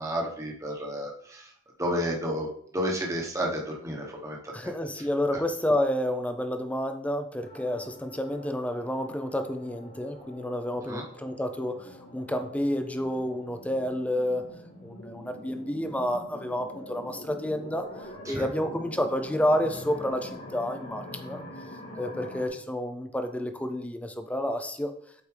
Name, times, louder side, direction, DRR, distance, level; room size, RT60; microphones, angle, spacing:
voice 1, 0.0-1.4 1.8-2.5 2.7-4.4 10.9-11.0 18.3-18.5, equal, 15° right, -1 dB, 1.1 m, -31 dB
voice 2, 4.5-14.4 14.8-17.9 18.3-21.4 22.0-24.9, left 1 dB, 5° left, 7 dB, 0.5 m, -30 dB
sound 1, 7.4-22.5, left 1 dB, 85° left, 2.2 m, -45 dB
8.2 x 4.3 x 3.3 m, 0.66 s
head